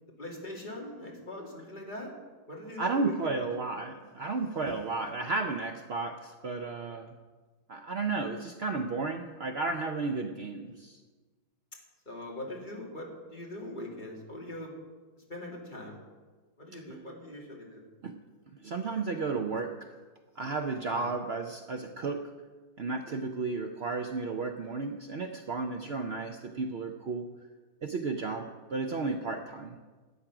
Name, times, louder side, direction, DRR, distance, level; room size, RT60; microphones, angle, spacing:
voice 1, 0.2-2.1 2.5-3.4 10.2-10.8 12.1-14.7 15.2-16.0 16.6-17.9 20.9-21.0, left 1 dB, 25° left, -2 dB, 2.3 m, -42 dB
voice 2, 2.8-7.2 7.7-11.0 18.0-18.2 18.6-19.9 20.4-22.3 22.8-27.3 27.8-29.8, right 3 dB, 80° right, 5 dB, 0.5 m, -33 dB
12.5 x 8.8 x 5.9 m, 1.3 s
omnidirectional pair, 2.0 m